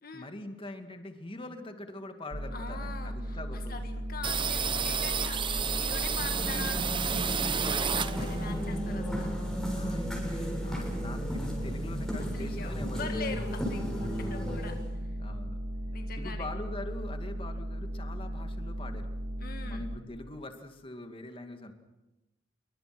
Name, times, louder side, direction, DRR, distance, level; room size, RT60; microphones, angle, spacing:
voice 1, 0.1-3.8 7.4-8.9 9.7-13.4 14.1-14.5 15.2-15.6 16.2-19.1 19.6-21.7, left 1 dB, 30° left, 6 dB, 2.4 m, -43 dB
sound 1, 2.3-20.0, equal, 80° right, 2.7 m, -37 dB
voice 2, 2.5-3.4 3.7-7.3 7.7-9.3 12.3-15.2 15.9-16.5 19.4-19.9, left 4 dB, 55° left, 5 dB, 1.8 m, -43 dB
sound 2, 4.2-8.6 8.9-10.3 10.6-10.7 10.9-11.7, right 6 dB, 25° right, 1.0 m, -32 dB
sound 3, 6.0-14.9, equal, 5° left, 7.5 m, -36 dB
28.0 x 23.5 x 6.2 m, 1.0 s
head